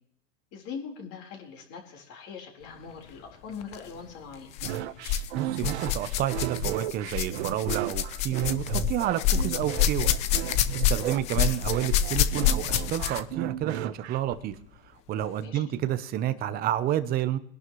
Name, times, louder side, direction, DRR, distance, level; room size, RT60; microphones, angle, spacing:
voice 1, 0.5-4.5 11.0-11.2 15.4-15.6, left 6 dB, 35° left, 0 dB, 4.1 m, -41 dB
sound 1, 3.6-3.8 4.5-5.3 5.6-13.4 14.3-14.4 15.2-15.3, left 9 dB, 20° left, 0.4 m, -27 dB
sound 2, 4.6-14.3, right 13 dB, 55° right, 1.0 m, -34 dB
voice 2, 5.3-10.1 10.7-14.6 15.1-17.4, right 12 dB, 25° right, 13 dB, 0.8 m, -30 dB
23.0 x 11.5 x 3.1 m, 0.70 s
hypercardioid pair, 140°, 39 cm